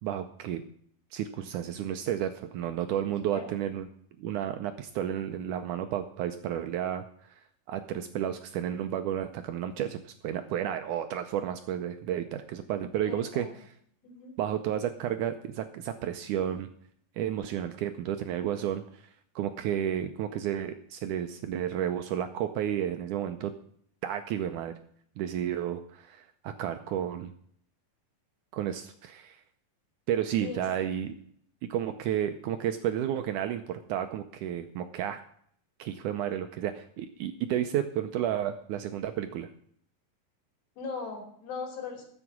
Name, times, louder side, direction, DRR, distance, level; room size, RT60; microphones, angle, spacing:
voice 1, 0.0-0.6 1.1-3.9 4.2-7.4 7.7-13.5 14.4-16.7 17.2-19.0 19.4-23.5 24.0-24.7 25.2-27.3 28.5-29.4 30.1-31.1 31.6-35.2 35.8-39.5, right 10 dB, 75° right, 8 dB, 1.9 m, -32 dB
voice 2, 13.0-13.6 14.0-14.4 30.4-30.9 40.8-42.1, left 5 dB, 80° left, 2 dB, 4.9 m, -40 dB
13.0 x 8.1 x 6.1 m, 0.63 s
omnidirectional pair, 4.2 m